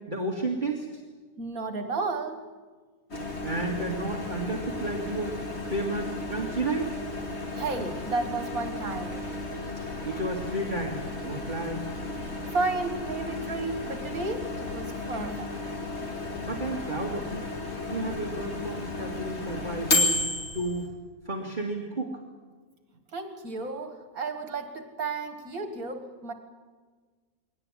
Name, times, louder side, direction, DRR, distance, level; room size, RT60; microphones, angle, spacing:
voice 1, 0.1-0.9 3.4-5.4 5.6-6.9 10.0-11.9 16.4-17.5 17.9-20.2 20.5-20.9 21.3-22.2, right 2 dB, 30° right, 0 dB, 2.4 m, -32 dB
voice 2, 1.4-2.5 7.5-9.2 12.2-15.5 23.1-26.3, right 3 dB, 65° right, 7 dB, 2.2 m, -33 dB
Microwave oven, 3.1-20.9, left 2 dB, 45° left, 2.9 m, -33 dB
22.0 x 18.5 x 9.9 m, 1.4 s
omnidirectional pair, 1.6 m